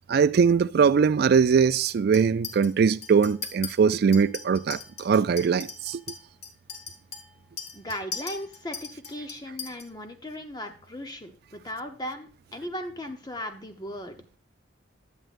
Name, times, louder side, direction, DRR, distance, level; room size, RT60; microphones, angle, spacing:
voice 1, 0.1-6.0, right 6 dB, 55° right, 0.3 m, -21 dB
Chink clink, 2.1-2.7 3.0-3.7 4.1-9.8, left 6 dB, 60° left, 1.5 m, -39 dB
voice 2, 7.7-14.2, left 1 dB, 20° left, 0.8 m, -37 dB
11.0 x 7.6 x 2.5 m
head